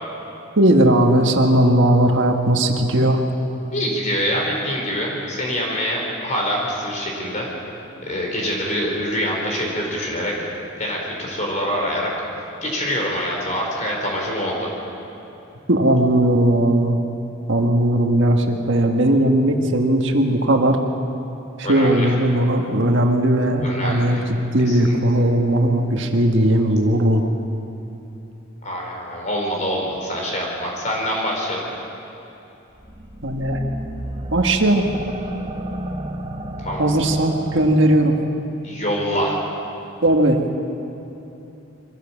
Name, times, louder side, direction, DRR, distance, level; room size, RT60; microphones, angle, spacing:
voice 1, 0.6-3.2 15.7-17.0 17.5-20.8 21.6-24.2 24.5-27.2 33.2-33.6 34.3-34.9 36.8-38.2 40.0-40.4, right 1 dB, 65° right, 3 dB, 1.5 m, -17 dB
voice 2, 3.7-7.5 8.0-10.3 10.8-12.1 12.6-14.7 21.6-22.1 23.6-24.2 24.7-25.0 28.6-31.7 36.6-36.9 38.6-39.4, equal, 35° left, -1 dB, 4.4 m, -25 dB
sound 1, 32.8-38.4, right 1 dB, 25° right, 1.0 m, -32 dB
23.0 x 16.0 x 7.3 m, 3.0 s
head